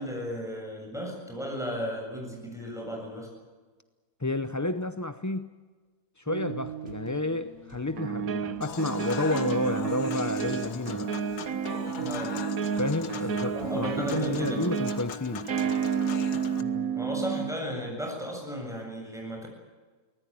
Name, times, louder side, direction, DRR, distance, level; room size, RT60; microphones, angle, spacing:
voice 1, 0.0-3.3 12.0-12.4 13.5-14.8 16.6-19.5, equal, ahead, 1 dB, 7.7 m, -35 dB
voice 2, 4.2-5.5 6.2-11.1 12.8-15.5, left 2 dB, 25° left, 10 dB, 0.4 m, -31 dB
sound 1, 6.3-7.4 8.0-17.6, right 7 dB, 65° right, 1.4 m, -31 dB
sound 2, 6.8-14.9, left 2 dB, 45° right, 4.8 m, -50 dB
Human voice / Acoustic guitar / Piano, 8.6-16.6, left 7 dB, 90° left, 1.7 m, -40 dB
24.0 x 19.5 x 8.9 m, 1.4 s
omnidirectional pair, 1.6 m